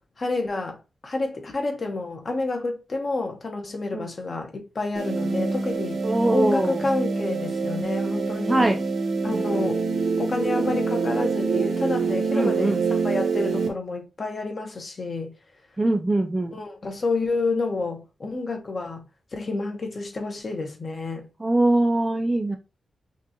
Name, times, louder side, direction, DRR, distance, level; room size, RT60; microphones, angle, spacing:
voice 1, 0.2-6.0 6.3-8.7 9.2-9.8 10.2-12.8 13.0-15.3 16.5-19.0 19.3-21.3, left 3 dB, 35° left, 1.0 m, -29 dB
sound 1, 4.9-13.7, right 4 dB, 70° right, 1.0 m, -25 dB
voice 2, 6.0-6.8 8.5-8.8 12.3-12.8 15.8-16.6 21.4-22.6, right 2 dB, 10° right, 0.4 m, -22 dB
5.8 x 2.5 x 2.8 m
wide cardioid pair, 165°, 0 cm